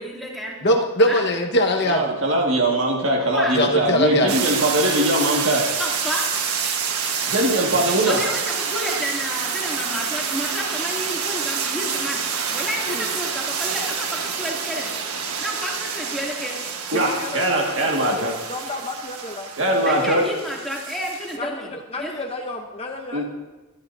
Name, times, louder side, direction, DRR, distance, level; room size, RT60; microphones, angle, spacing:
voice 1, 0.0-0.6 1.0-1.2 3.2-3.6 5.8-6.3 8.0-12.2 12.5-14.9 15.4-16.6 19.9-21.7 22.0-22.1, equal, ahead, -5 dB, 2.6 m, -30 dB
voice 2, 0.6-2.0 3.5-4.3, equal, 50° left, 2 dB, 1.4 m, -19 dB
voice 3, 1.8-5.8 7.3-8.3 16.9-18.4 19.6-20.4 23.1-23.2, right 1 dB, 60° right, 0 dB, 2.0 m, -21 dB
sound 1, 4.3-21.4, right 6 dB, 85° right, 1.4 m, -28 dB
voice 4, 16.9-20.0 21.3-23.2, left 2 dB, 25° left, 2 dB, 0.8 m, -33 dB
23.5 x 11.5 x 2.7 m, 1.2 s
head